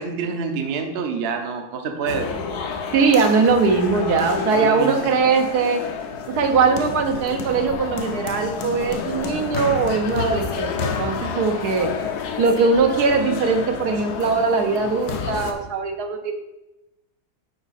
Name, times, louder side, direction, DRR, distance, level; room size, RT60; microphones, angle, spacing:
voice 1, 0.0-2.3 4.5-5.1, right 5 dB, 50° right, 4 dB, 0.8 m, -27 dB
sound 1, 2.1-15.5, left 6 dB, 75° left, 1.2 m, -30 dB
voice 2, 2.9-5.8 6.3-11.9 12.4-16.3, right 4 dB, 75° right, 5 dB, 1.3 m, -20 dB
8.4 x 4.0 x 4.1 m, 0.96 s
omnidirectional pair, 1.7 m